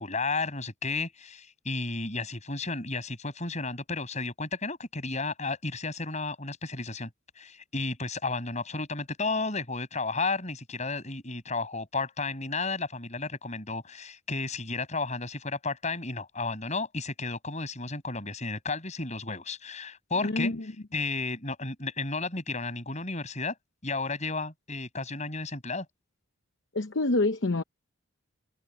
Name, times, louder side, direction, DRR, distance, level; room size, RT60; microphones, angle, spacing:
voice 1, 0.0-7.1 7.4-20.5 20.9-23.6 23.8-25.9, left 3 dB, 35° left, 7.7 m, -33 dB
voice 2, 20.2-20.6 26.7-27.6, left 2 dB, 65° left, 0.9 m, -26 dB
head